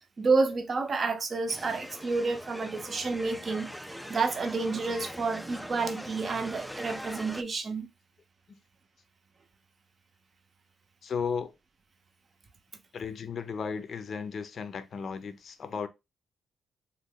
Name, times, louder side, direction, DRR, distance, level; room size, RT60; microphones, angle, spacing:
voice 1, 0.2-3.7 4.1-7.9, right 4 dB, 45° right, 0.6 m, -29 dB
sound 1, 1.5-7.4, equal, ahead, 0.3 m, -42 dB
voice 2, 11.0-11.5 12.9-15.9, left 6 dB, 55° left, 0.5 m, -35 dB
3.1 x 2.2 x 3.6 m
cardioid pair, 70°, 0 cm